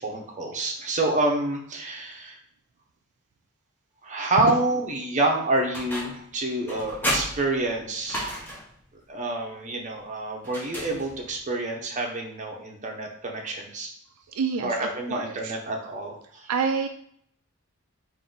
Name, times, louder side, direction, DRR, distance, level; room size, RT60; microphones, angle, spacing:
voice 1, 0.0-2.4 4.0-8.5 9.1-13.9 14.6-16.5, right 2 dB, 35° right, 1 dB, 0.7 m, -28 dB
sound 1, 5.7-6.3 6.7-8.8 10.4-11.4, equal, 10° left, 0.8 m, -32 dB
voice 2, 14.3-15.5 16.5-16.9, right 5 dB, 80° right, 6 dB, 0.4 m, -28 dB
3.6 x 2.6 x 3.9 m, 0.65 s
head